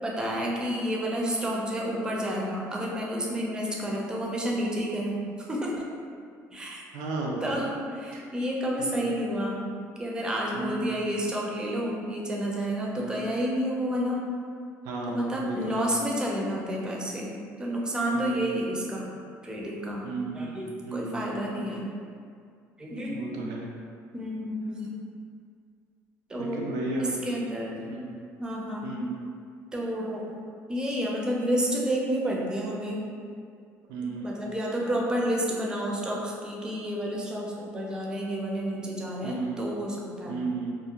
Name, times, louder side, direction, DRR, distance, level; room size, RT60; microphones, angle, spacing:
voice 1, 0.0-5.9 6.5-6.8 7.4-9.6 10.0-14.3 15.1-17.3 17.6-19.1 19.4-21.9 22.8-23.4 24.1-25.0 26.3-26.7 27.0-27.8 28.4-28.9 29.7-30.3 30.7-33.1 34.0-40.4, equal, 15° right, -3 dB, 0.4 m, -30 dB
voice 2, 6.9-7.4 8.8-9.1 10.5-11.0 13.0-13.2 14.8-15.9 18.1-18.4 20.0-21.6 23.1-23.7 26.4-27.1 27.8-28.1 28.8-29.2 33.9-34.4 39.2-39.6 40.3-40.7, right 3 dB, 85° right, -1 dB, 0.4 m, -33 dB
2.4 x 2.0 x 2.8 m, 2.3 s
cardioid pair, 130°, 6 cm